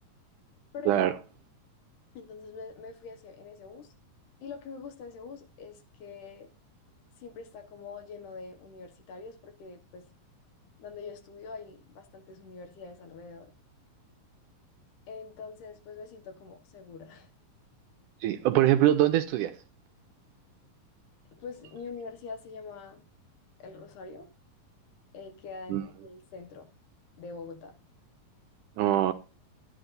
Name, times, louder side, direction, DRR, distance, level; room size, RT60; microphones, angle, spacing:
voice 1, 0.7-1.1 2.1-3.9 4.4-6.5 7.2-10.1 10.8-13.5 15.1-17.3 21.3-23.0 23.6-24.3 25.1-26.7 27.2-27.7, left 5 dB, 70° left, 2.7 m, -44 dB
voice 2, 18.2-19.5 25.7-25.8 28.8-29.1, right 13 dB, 80° right, 1.9 m, -23 dB
11.0 x 10.5 x 2.6 m
omnidirectional pair, 4.0 m